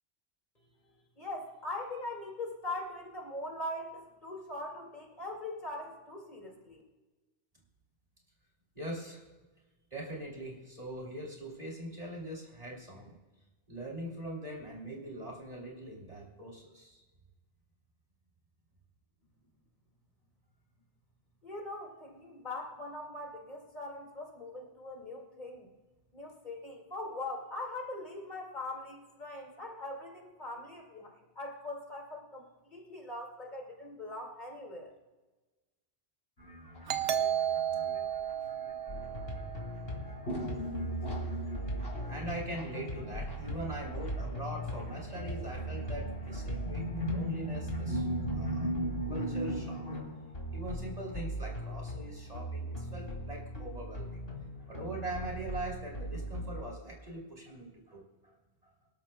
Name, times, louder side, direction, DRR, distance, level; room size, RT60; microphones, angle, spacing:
voice 1, 1.2-6.8 21.4-25.7 26.1-34.9, left 2 dB, 45° left, 0 dB, 2.4 m, -41 dB
voice 2, 8.7-9.2 9.9-13.2 13.7-17.0 41.9-49.9 50.5-54.2 54.6-58.3, right 1 dB, 35° right, -2 dB, 3.2 m, -42 dB
sound 1, 36.4-39.2 40.3-50.0, equal, 85° left, 4.3 m, -38 dB
Doorbell, 36.9-40.2, right 9 dB, 70° right, 0.9 m, -33 dB
sound 2, 38.9-56.6, right 1 dB, 65° left, 2.6 m, -39 dB
25.0 x 12.5 x 2.3 m, 1.2 s
omnidirectional pair, 1.1 m